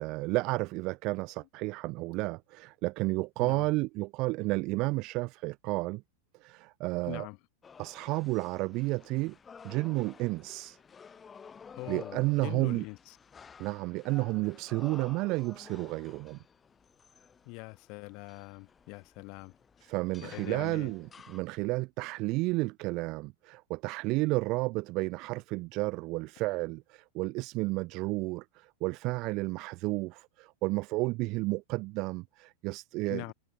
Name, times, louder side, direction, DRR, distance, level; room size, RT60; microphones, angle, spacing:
voice 1, 0.0-6.0 6.4-7.3 7.8-9.4 9.6-10.8 11.9-12.8 13.6-16.4 19.8-33.2, right 23 dB, 40° right, 2.3 m, -32 dB
voice 2, 7.1-7.4 11.7-13.2 17.4-19.5 20.2-20.9 33.1-33.3, left 30 dB, 45° left, 4.4 m, -43 dB
sound 1, 7.6-21.4, left 6 dB, 20° left, 3.9 m, -53 dB
figure-of-eight pair, 90°, 0 cm